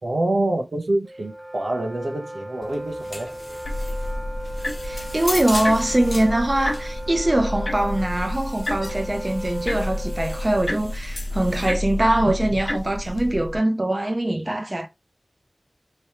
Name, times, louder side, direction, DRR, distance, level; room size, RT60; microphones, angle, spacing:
voice 1, 0.0-3.4, right 1 dB, 85° right, 0.9 m, -26 dB
Wind instrument woodwind instrument, 1.1-11.0, right 1 dB, 15° right, 0.4 m, -37 dB
sound 1, 2.6-13.3, left 2 dB, 45° left, 0.4 m, -39 dB
sound 2, 3.6-13.6, left 1 dB, 60° left, 1.0 m, -30 dB
voice 2, 4.8-14.9, right 1 dB, 35° right, 0.8 m, -22 dB
3.3 x 3.1 x 2.8 m
wide cardioid pair, 45°, 0 cm